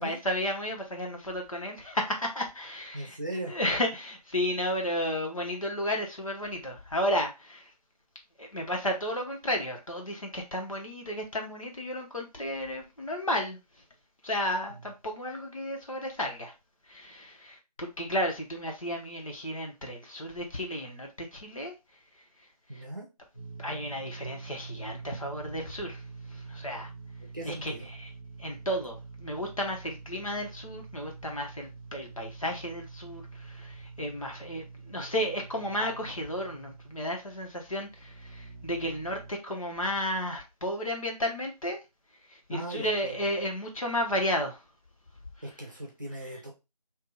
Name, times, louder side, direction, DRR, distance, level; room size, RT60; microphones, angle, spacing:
voice 1, 0.0-3.2 3.5-7.7 8.4-13.6 14.2-16.5 16.9-21.7 22.7-22.8 23.6-26.0 26.3-26.9 27.4-27.7 28.4-41.8 42.5-44.6, equal, 50° left, 1.1 m, -33 dB
voice 2, 2.9-3.5 22.7-23.1 27.2-27.9 42.5-43.3 45.4-46.5, right 1 dB, 30° right, 0.8 m, -38 dB
sound 1, 23.3-39.3, right 4 dB, 20° left, 0.8 m, -46 dB
2.8 x 2.6 x 3.8 m
figure-of-eight pair, 165°, 21 cm